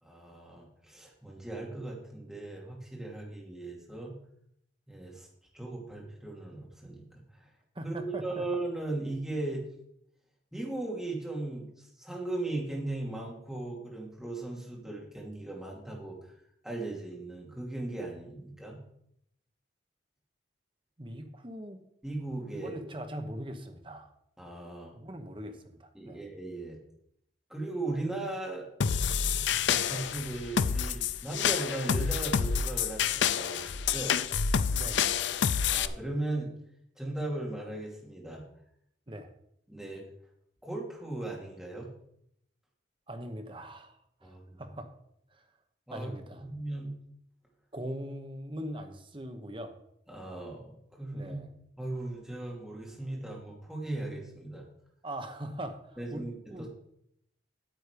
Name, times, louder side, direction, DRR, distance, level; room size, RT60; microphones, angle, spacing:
voice 1, 0.0-4.2 4.9-5.3 5.5-7.1 7.3-7.4 7.8-9.7 10.5-16.3 16.6-18.8 22.0-22.7 24.4-25.0 25.9-26.8 27.5-28.7 29.7-34.2 35.7-36.5 37.0-38.4 39.7-40.0 40.6-41.9 44.2-44.6 45.9-46.1 46.4-46.9 50.1-51.4 51.8-54.6 56.0-56.7, right 2 dB, 5° right, -3 dB, 2.6 m, -37 dB
voice 2, 7.7-8.4 21.0-21.8 22.6-24.1 24.9-26.2 34.7-35.2 39.1-39.3 43.1-44.3 44.6-44.9 45.3-45.4 45.9-46.4 47.7-49.7 51.1-51.5 55.0-56.7, right 1 dB, 25° right, 6 dB, 1.0 m, -41 dB
sound 1, 28.8-35.9, left 7 dB, 70° left, 0.5 m, -28 dB
9.3 x 8.2 x 5.1 m, 0.73 s
head